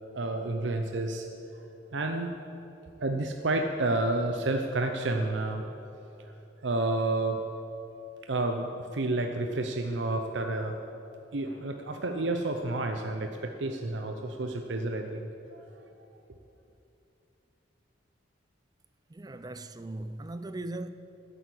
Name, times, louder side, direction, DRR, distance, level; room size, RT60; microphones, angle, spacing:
voice 1, 0.1-1.3 1.9-2.3 3.0-5.6 6.6-7.4 8.2-10.8 11.3-15.6, right 2 dB, 70° right, 0.7 m, -30 dB
voice 2, 19.1-20.9, right 2 dB, 20° right, 0.4 m, -38 dB
10.5 x 9.2 x 8.5 m
head